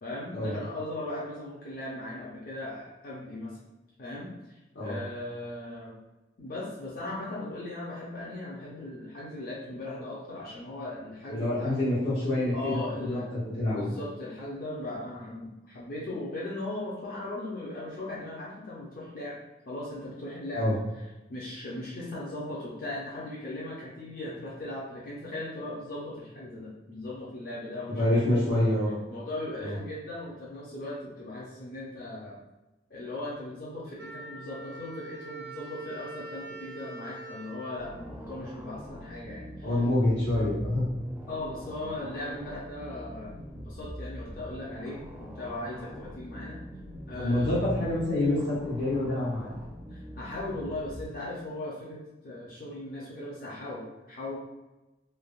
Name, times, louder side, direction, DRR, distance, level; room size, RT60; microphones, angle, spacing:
voice 1, 0.0-3.6 4.0-5.9 6.4-11.7 12.5-13.3 13.7-19.4 19.7-20.7 21.0-28.4 29.1-32.4 32.9-39.8 41.3-46.6 47.1-47.6 49.9-54.4, left 1 dB, 50° left, -6 dB, 0.5 m, -38 dB
voice 2, 11.3-12.8 13.1-13.9 20.5-20.8 27.9-28.9 29.6-29.7 39.6-40.8 47.1-49.5, left 1 dB, 75° left, -9 dB, 1.0 m, -27 dB
Wind instrument woodwind instrument, 34.0-38.8, right 3 dB, 70° right, 0.4 m, -44 dB
sound 1, 37.8-51.0, equal, 10° right, 0.4 m, -43 dB
3.3 x 2.1 x 2.3 m, 1.0 s
head